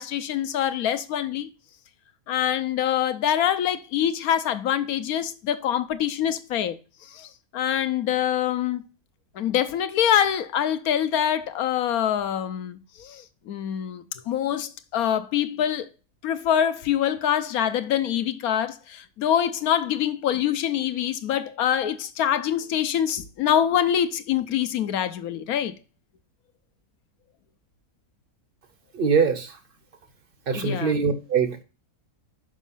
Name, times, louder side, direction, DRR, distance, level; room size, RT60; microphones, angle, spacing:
voice 1, 0.0-1.5 2.3-6.8 7.1-8.8 9.4-15.9 16.2-25.7 30.5-30.9, left 10 dB, 75° left, 1.2 m, -25 dB
voice 2, 28.9-29.6 30.5-31.6, right 5 dB, 40° right, 1.0 m, -23 dB
6.3 x 5.1 x 5.5 m
omnidirectional pair, 1.6 m